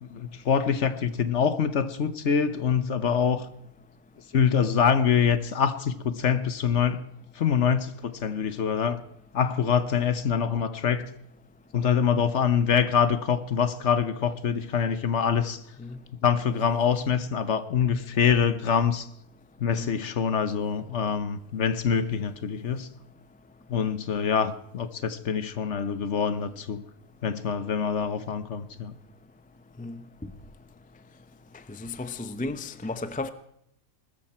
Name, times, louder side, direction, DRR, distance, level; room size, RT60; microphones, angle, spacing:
voice 1, 0.0-3.5 4.3-7.0 7.3-9.0 9.3-11.1 11.7-15.6 16.2-19.1 19.6-22.9 23.7-26.8 27.2-28.9, left 7 dB, 60° left, 1.2 m, -25 dB
voice 2, 31.8-33.3, left 3 dB, 10° left, 0.5 m, -34 dB
20.5 x 13.5 x 4.4 m
omnidirectional pair, 1.5 m